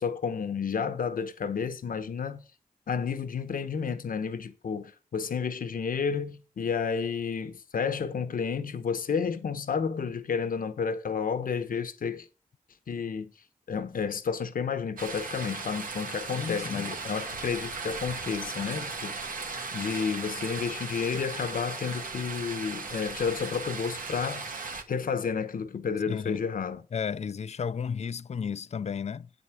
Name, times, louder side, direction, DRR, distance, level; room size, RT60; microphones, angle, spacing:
voice 1, 0.0-2.5 2.9-12.3 12.9-13.3 13.7-19.2 19.7-24.5 24.9-26.8, left 6 dB, 80° left, 1.1 m, -31 dB
sound 1, 15.0-24.8, right 4 dB, 80° right, 1.6 m, -37 dB
voice 2, 16.3-16.9 26.1-26.4 26.9-29.3, left 6 dB, 50° left, 0.4 m, -33 dB
8.6 x 8.1 x 5.9 m
wide cardioid pair, 100°, 14 cm